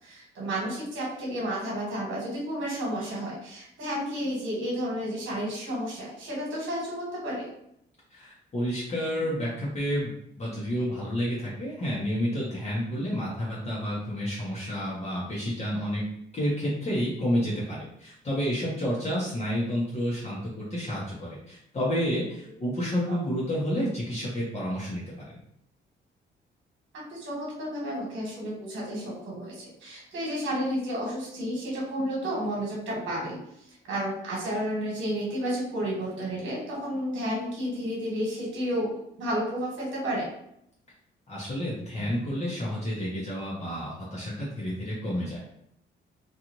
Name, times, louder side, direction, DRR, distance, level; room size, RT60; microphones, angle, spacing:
voice 1, 0.0-7.5 23.1-23.2 26.9-38.9 39.2-40.3, equal, 70° right, -4 dB, 1.3 m, -31 dB
voice 2, 8.1-10.1 10.4-16.0 16.3-25.0 41.3-45.6, equal, 35° left, -6 dB, 0.9 m, -30 dB
2.5 x 2.5 x 3.0 m, 0.75 s
cardioid pair, 90°, 20 cm